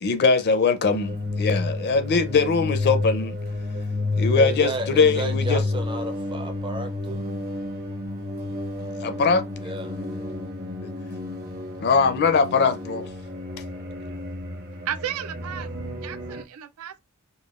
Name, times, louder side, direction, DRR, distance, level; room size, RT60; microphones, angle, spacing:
voice 1, 0.0-3.3 4.1-5.6 9.0-9.4 10.8-10.9 11.8-13.1, left 4 dB, 50° left, 0.5 m, -21 dB
sound 1, 0.9-16.4, left 2 dB, 45° right, 1.0 m, -30 dB
voice 2, 4.3-7.2 9.6-10.0, right 2 dB, 20° right, 0.5 m, -32 dB
voice 3, 14.9-15.7 16.0-17.0, right 10 dB, 80° right, 0.4 m, -33 dB
5.0 x 2.2 x 2.4 m
head